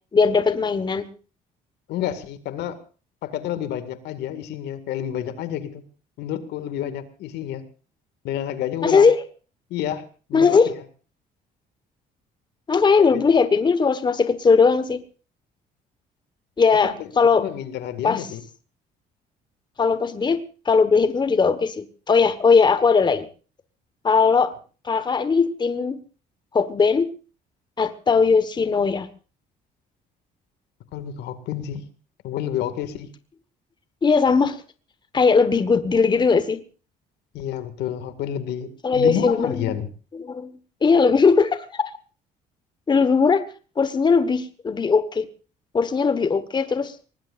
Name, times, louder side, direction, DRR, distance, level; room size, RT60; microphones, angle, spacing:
voice 1, 0.1-1.1 8.8-9.2 10.3-10.7 12.7-15.0 16.6-17.5 18.0-18.2 19.8-23.3 24.0-24.5 24.8-26.0 26.5-27.1 27.8-29.1 34.0-34.6 35.1-36.6 38.8-39.6 40.1-40.5 40.8-41.9 42.9-43.5 43.8-45.3 45.7-46.9, left 5 dB, 25° left, 13 dB, 1.3 m, -19 dB
voice 2, 1.9-2.8 3.2-5.8 6.2-7.6 8.2-9.1 9.7-10.0 10.3-10.8 13.1-13.3 16.8-17.1 17.4-18.4 30.9-31.9 32.2-33.1 37.3-39.9, left 10 dB, 80° left, 12 dB, 2.1 m, -29 dB
24.0 x 19.5 x 2.5 m, 0.36 s
cardioid pair, 110°, 17 cm